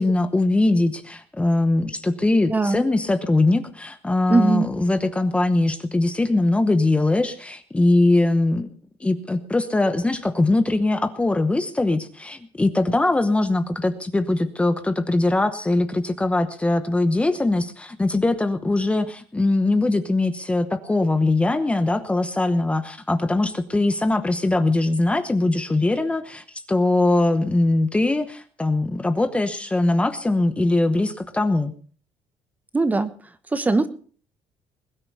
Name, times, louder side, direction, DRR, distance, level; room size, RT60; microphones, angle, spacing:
voice 1, 0.0-8.7 9.0-31.7, left 2 dB, 10° left, 10 dB, 1.0 m, -21 dB
voice 2, 2.5-2.8 4.3-4.7 32.7-33.1 33.5-33.9, right 3 dB, 15° right, 12 dB, 1.1 m, -20 dB
21.0 x 9.7 x 5.5 m, 0.43 s
cardioid pair, 135°, 11 cm